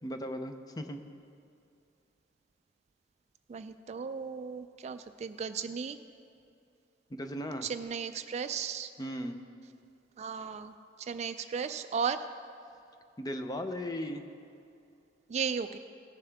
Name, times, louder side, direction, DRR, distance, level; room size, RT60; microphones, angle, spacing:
voice 1, 0.0-1.0 7.1-7.7 9.0-9.4 13.2-14.2, equal, 20° left, 7 dB, 0.5 m, -37 dB
voice 2, 3.5-6.0 7.6-8.9 10.2-12.3 15.3-15.8, right 6 dB, 40° right, 11 dB, 0.3 m, -35 dB
17.0 x 7.1 x 3.4 m, 2.6 s
head